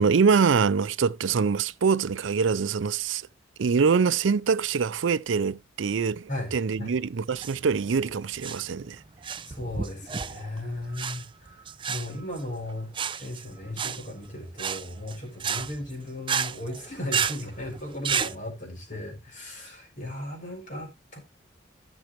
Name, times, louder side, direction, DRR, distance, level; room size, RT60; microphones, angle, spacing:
voice 1, 0.0-3.2 3.6-9.0, right 5 dB, 85° right, 0.5 m, -24 dB
voice 2, 6.3-6.9 9.4-21.2, left 1 dB, 45° left, 4.4 m, -36 dB
sound 1, 7.3-18.3, right 7 dB, 25° right, 0.5 m, -32 dB
15.0 x 6.3 x 3.0 m
head